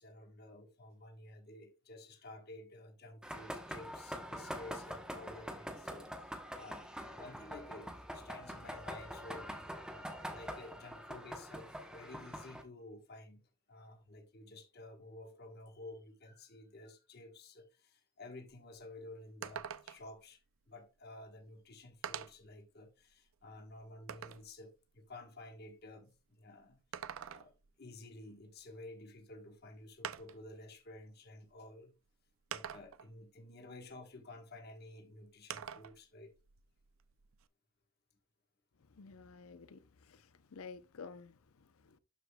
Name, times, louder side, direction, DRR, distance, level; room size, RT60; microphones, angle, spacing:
voice 1, 0.0-13.4 13.7-20.4 20.7-27.5 27.8-31.9 32.5-36.3, left 2 dB, 50° left, 1.3 m, -53 dB
sound 1, 3.2-12.6, equal, 5° right, 0.9 m, -45 dB
sound 2, 18.5-18.6 18.9-19.0 19.4-20.2 21.2-21.3 22.0-22.5 23.1-24.5 26.7-27.7 29.2-29.3 30.0-30.5 31.5-31.6 32.5-33.1 35.5-36.0 36.3-37.4, right 8 dB, 70° right, 0.5 m, -45 dB
voice 2, 38.9-42.0, left 5 dB, 90° left, 0.6 m, -52 dB
12.0 x 4.9 x 2.3 m
head